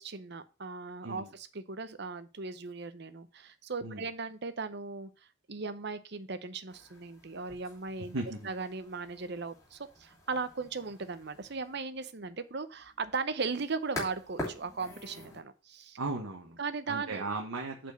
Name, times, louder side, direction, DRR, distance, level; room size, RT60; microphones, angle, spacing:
voice 1, 0.0-5.1 5.5-8.1 8.4-16.0 16.6-17.3, right 4 dB, 50° right, 12 dB, 0.7 m, -37 dB
sound 1, 6.7-15.4, left 1 dB, 15° left, 2.9 m, -46 dB
voice 2, 8.0-8.5 16.0-16.6 16.9-17.9, right 2 dB, 80° right, 1 dB, 1.3 m, -37 dB
8.2 x 4.5 x 6.4 m, 0.33 s
head